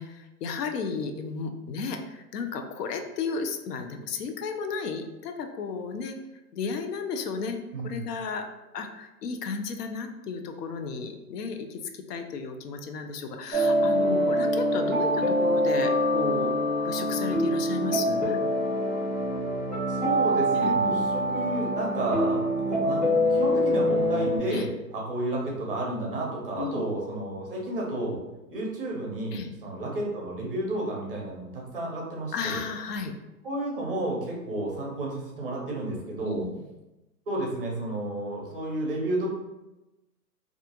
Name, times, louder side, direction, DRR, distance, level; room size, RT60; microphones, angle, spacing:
voice 1, 0.0-6.2 6.5-8.5 8.7-18.4 20.6-20.7 24.5-24.7 26.6-26.8 29.3-29.5 32.3-33.1 36.2-36.6, left 5 dB, 70° left, 6 dB, 0.5 m, -33 dB
sound 1, 13.5-24.4, equal, 10° left, 0.7 m, -25 dB
voice 2, 19.9-24.7 24.9-28.2 28.5-32.6 33.4-36.5 37.3-39.3, right 1 dB, 35° right, -2 dB, 0.5 m, -31 dB
2.4 x 2.3 x 2.8 m, 1.0 s
hypercardioid pair, 155°, 49 cm